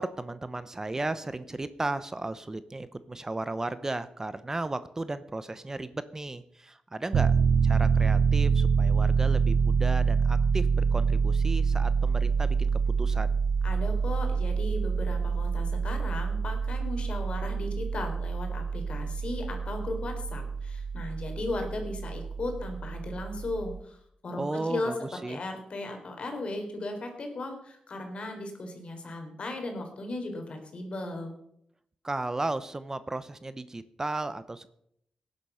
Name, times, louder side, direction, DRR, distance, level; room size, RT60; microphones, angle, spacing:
voice 1, 0.0-12.7 13.0-13.4 24.4-25.4 32.0-34.7, right 2 dB, 25° right, 14 dB, 0.8 m, -35 dB
Piano, 7.1-23.8, right 5 dB, 80° right, 0.5 m, -26 dB
voice 2, 13.6-24.0 24.2-31.3, left 2 dB, 55° left, 4 dB, 3.9 m, -36 dB
18.5 x 10.5 x 5.7 m, 0.72 s
wide cardioid pair, 95°, 2 cm